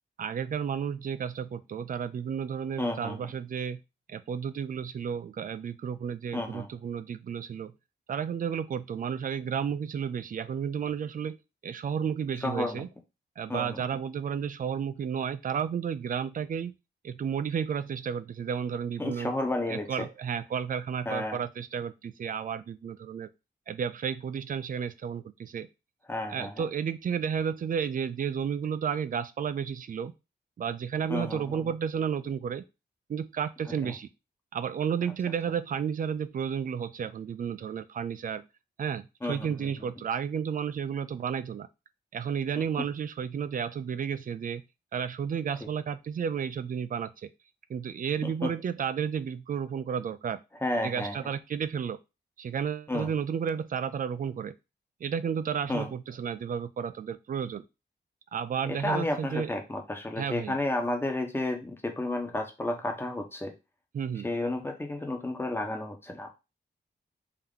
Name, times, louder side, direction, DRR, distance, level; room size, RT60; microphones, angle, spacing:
voice 1, 0.2-3.8 4.1-7.7 8.1-12.9 13.4-16.8 17.0-19.3 19.7-23.3 23.7-25.7 26.3-30.1 30.6-32.6 33.1-34.1 34.5-38.4 38.8-41.7 42.1-44.6 44.9-47.3 47.7-50.4 50.8-52.0 52.4-54.6 55.0-57.6 58.3-59.5 60.2-60.5 63.9-64.3, right 7 dB, 50° right, 13 dB, 0.4 m, -32 dB
voice 2, 2.8-3.2 6.3-6.7 12.4-12.8 13.5-13.8 19.0-20.1 21.1-21.4 26.1-26.7 31.1-31.7 33.8-33.9 39.2-39.9 48.2-48.5 50.6-51.3 52.9-53.1 55.7-55.9 58.8-63.5 64.2-66.3, left 2 dB, 10° left, 3 dB, 0.8 m, -32 dB
3.6 x 2.9 x 3.7 m, 0.26 s
wide cardioid pair, 130°, 19 cm